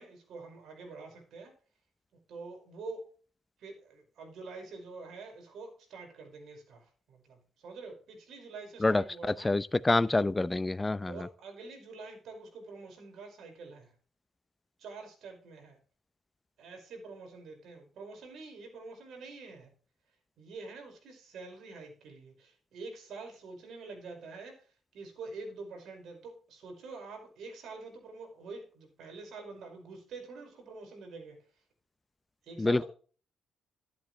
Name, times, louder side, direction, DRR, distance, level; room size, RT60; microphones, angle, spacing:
voice 1, 0.0-1.5 2.3-3.1 3.6-9.5 10.1-10.3 11.1-13.9 14.8-15.8 16.6-19.7 20.4-24.6 24.9-31.4 32.4-32.9, right 3 dB, 75° right, 5.2 m, -46 dB
voice 2, 9.4-11.1 32.6-32.8, left 2 dB, 20° left, 0.6 m, -26 dB
12.5 x 10.5 x 3.2 m
cardioid pair, 90°, 0 cm